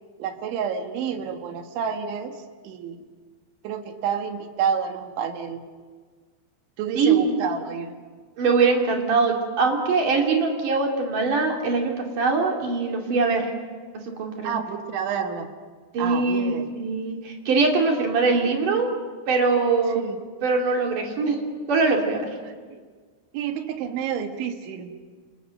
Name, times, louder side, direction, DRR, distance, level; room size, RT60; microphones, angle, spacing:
voice 1, 0.2-3.0 3.6-5.6 6.8-8.0 14.4-15.5 16.0-16.8 20.0-20.2 22.7-22.8 23.3-24.9, right 7 dB, 80° right, 6 dB, 3.9 m, -29 dB
voice 2, 7.0-7.3 8.4-13.5 14.2-14.6 15.9-18.9 19.3-20.0 20.4-21.4 21.7-22.3, right 4 dB, 50° right, 1 dB, 4.0 m, -22 dB
29.0 x 28.5 x 6.5 m, 1.5 s
omnidirectional pair, 5.4 m